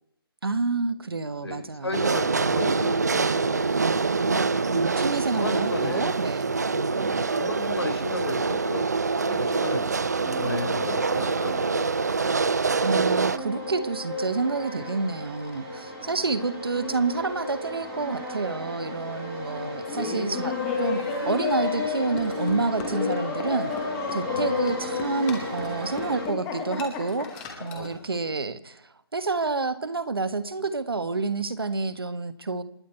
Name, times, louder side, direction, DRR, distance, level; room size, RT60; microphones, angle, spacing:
voice 1, 0.4-2.1 4.1-7.3 12.8-23.7 24.1-28.8 29.1-32.6, right 3 dB, 70° right, 13 dB, 1.4 m, -29 dB
voice 2, 1.4-3.8 4.5-4.8 5.3-6.1 6.7-9.8 10.2-11.9 19.5-19.7 24.2-24.6 27.7-28.3, left 3 dB, 85° left, 3 dB, 4.2 m, -35 dB
sound 1, 1.9-13.4, right 4 dB, 40° right, 0.6 m, -25 dB
sound 2, 8.2-26.2, equal, 10° right, 3.5 m, -36 dB
Laughter, 19.8-27.9, left 6 dB, 5° left, 1.0 m, -31 dB
27.5 x 9.5 x 4.5 m, 0.77 s
figure-of-eight pair, 175°, 13 cm